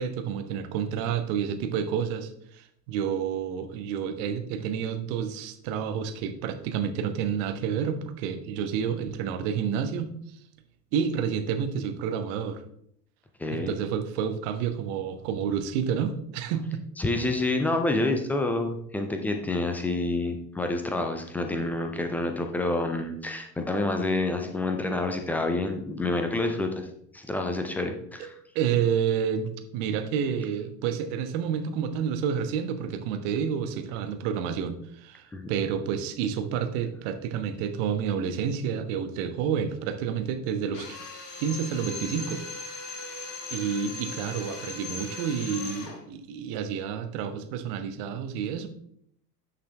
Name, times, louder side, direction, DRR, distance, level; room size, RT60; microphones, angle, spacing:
voice 1, 0.0-10.1 10.9-12.6 13.5-16.8 28.5-41.0 41.4-42.4 43.5-48.7, right 7 dB, 45° right, 8 dB, 1.2 m, -29 dB
voice 2, 13.4-13.7 17.0-26.9 27.1-28.4 35.3-35.5, left 2 dB, 5° left, 5 dB, 0.3 m, -28 dB
Drill, 40.7-46.0, left 3 dB, 70° left, 1.8 m, -38 dB
9.8 x 5.7 x 3.4 m, 0.68 s
figure-of-eight pair, 80°, 49 cm